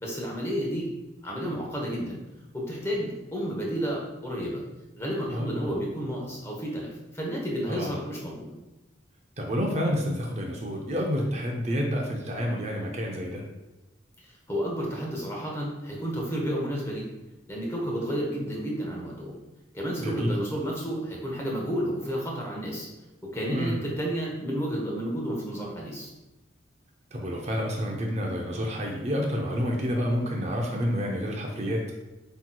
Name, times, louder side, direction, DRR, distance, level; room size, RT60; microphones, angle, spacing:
voice 1, 0.0-0.9 1.2-2.2 2.5-4.6 5.0-8.5 14.2-17.1 17.5-19.4 19.7-22.9 23.2-26.1, equal, 15° left, -2 dB, 0.9 m, -31 dB
voice 2, 5.3-5.8 7.7-8.0 9.4-13.4 20.0-20.3 23.5-23.8 27.1-31.8, equal, 35° right, 0 dB, 0.5 m, -29 dB
7.9 x 3.0 x 2.2 m, 1.0 s
head